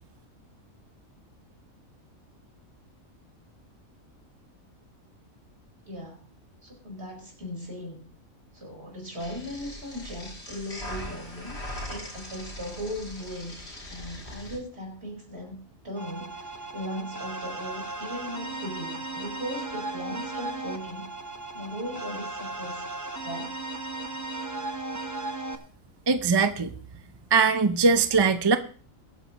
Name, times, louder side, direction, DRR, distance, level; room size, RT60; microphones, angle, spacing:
voice 1, 5.9-6.3 6.6-8.1 8.5-11.6 11.9-13.6 13.9-21.1 21.5-22.9 23.2-23.5, equal, 50° right, 0 dB, 4.9 m, -38 dB
sound 1, 9.2-14.6, left 1 dB, 50° left, 3.5 m, -40 dB
sound 2, 16.0-25.6, right 2 dB, 15° right, 1.0 m, -36 dB
voice 2, 26.1-26.7 27.3-28.6, right 4 dB, 30° right, 10 dB, 0.5 m, -21 dB
22.5 x 9.2 x 3.0 m, 0.40 s
omnidirectional pair, 1.4 m